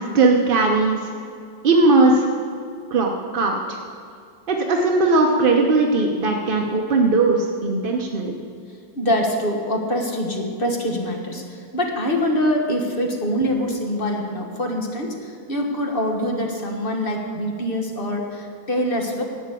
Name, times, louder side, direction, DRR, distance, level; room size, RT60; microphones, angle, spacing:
voice 1, 0.1-1.0 1.6-2.3 2.9-3.8 4.5-8.3, right 3 dB, 45° right, 1 dB, 0.7 m, -18 dB
voice 2, 8.9-19.2, equal, 30° left, 2 dB, 1.5 m, -24 dB
11.5 x 8.7 x 8.3 m, 2.3 s
omnidirectional pair, 2.0 m